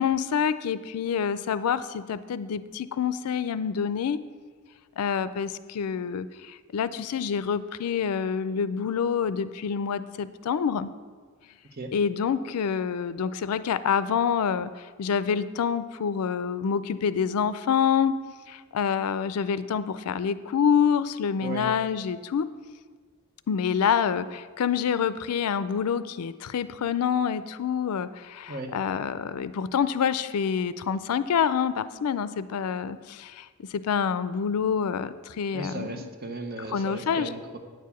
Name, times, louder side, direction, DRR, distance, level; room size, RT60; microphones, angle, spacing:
voice 1, 0.0-4.2 5.0-10.9 11.9-18.1 18.5-22.5 23.5-33.5 33.7-35.9 36.7-37.3, left 7 dB, 85° left, 14 dB, 0.4 m, -27 dB
voice 2, 35.5-37.6, right 2 dB, 45° right, 5 dB, 0.9 m, -36 dB
9.4 x 4.8 x 7.0 m, 1.5 s
head